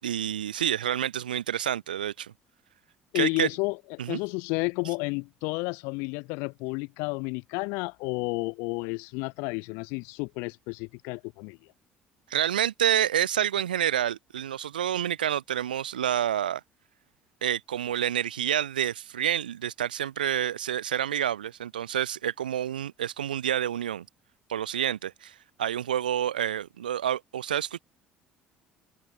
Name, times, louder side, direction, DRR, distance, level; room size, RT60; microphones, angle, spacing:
voice 1, 0.0-2.3 3.1-3.5 4.0-4.2 12.3-16.6 17.4-24.1 24.5-27.8, right 10 dB, 80° right, 4.4 m, -28 dB
voice 2, 3.1-11.6, left 30 dB, 65° left, 2.4 m, -31 dB
figure-of-eight pair, 55°, 5 cm